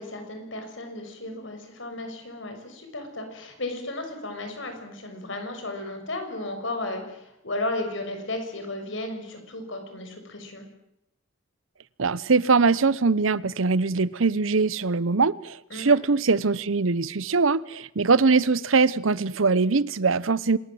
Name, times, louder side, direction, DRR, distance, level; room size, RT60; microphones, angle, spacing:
voice 1, 0.0-10.6 15.7-16.0, left 2 dB, 65° left, 6.1 m, -34 dB
voice 2, 12.0-20.6, right 4 dB, 75° right, 0.8 m, -22 dB
26.5 x 20.5 x 7.8 m
head